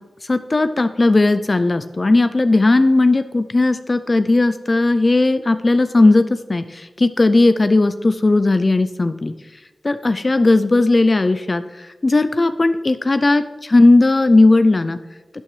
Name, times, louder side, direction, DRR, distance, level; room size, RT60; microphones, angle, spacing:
voice 1, 0.3-9.3 9.8-15.0, left 2 dB, 40° left, 11 dB, 0.4 m, -16 dB
11.5 x 8.8 x 3.2 m, 1.2 s
cardioid pair, 55°, 0 cm